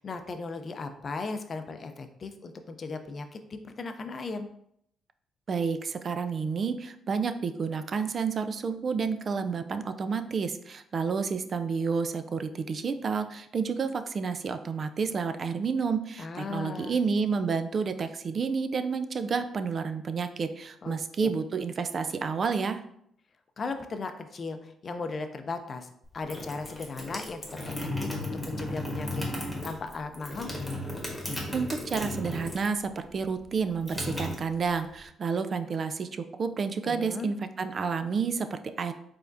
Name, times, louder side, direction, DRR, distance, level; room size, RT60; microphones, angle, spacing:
voice 1, 0.0-4.5 16.2-17.0 20.8-21.3 23.6-25.9 26.1-30.5 36.8-37.3, left 4 dB, 40° left, 8 dB, 0.5 m, -37 dB
voice 2, 5.5-22.8 31.5-38.9, right 5 dB, 45° right, 9 dB, 0.3 m, -30 dB
sound 1, 26.0-32.8 33.1-35.0, left 1 dB, 10° left, 1.3 m, -35 dB
4.6 x 3.5 x 2.6 m, 0.73 s
cardioid pair, 90°, 0 cm